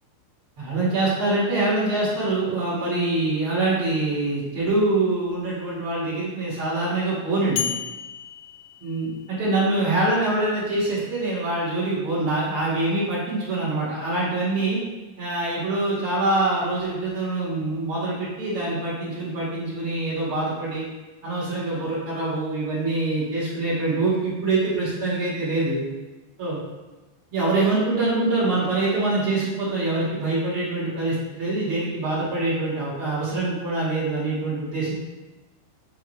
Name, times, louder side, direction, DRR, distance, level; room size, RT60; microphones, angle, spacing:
voice 1, 0.6-7.7 8.8-14.8 15.2-20.8 21.2-25.8 26.4-26.6 27.3-34.9, right 2 dB, 45° right, -8 dB, 2.0 m, -24 dB
sound 1, 7.6-9.6, left 9 dB, 90° left, 2.9 m, -33 dB
8.7 x 3.7 x 3.3 m, 1.2 s
omnidirectional pair, 5.1 m